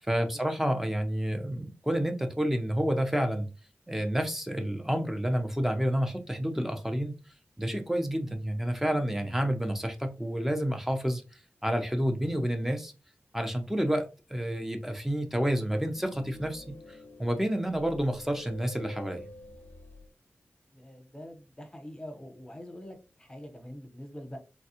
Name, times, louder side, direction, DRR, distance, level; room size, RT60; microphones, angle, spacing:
voice 1, 0.1-3.5 3.9-7.1 7.6-11.2 11.6-12.9 13.3-19.2, equal, 5° right, 6 dB, 0.5 m, -29 dB
sound 1, 15.4-20.1, left 2 dB, 50° left, 0.5 m, -49 dB
voice 2, 20.7-24.4, left 1 dB, 15° left, 4 dB, 0.9 m, -44 dB
3.4 x 2.3 x 2.7 m, 0.30 s
wide cardioid pair, 80°, 4 cm